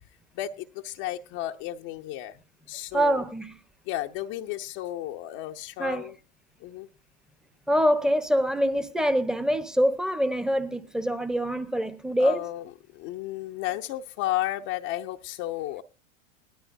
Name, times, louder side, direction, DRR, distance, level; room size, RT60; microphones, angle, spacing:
voice 1, 0.3-2.4 2.7-3.2 3.9-6.2 6.6-6.9 12.2-15.8, left 14 dB, 45° left, 0.8 m, -33 dB
voice 2, 2.9-3.5 5.8-6.1 7.7-12.4, equal, ahead, 1.0 m, -25 dB
20.0 x 12.5 x 2.6 m
hypercardioid pair, 95°, 37 cm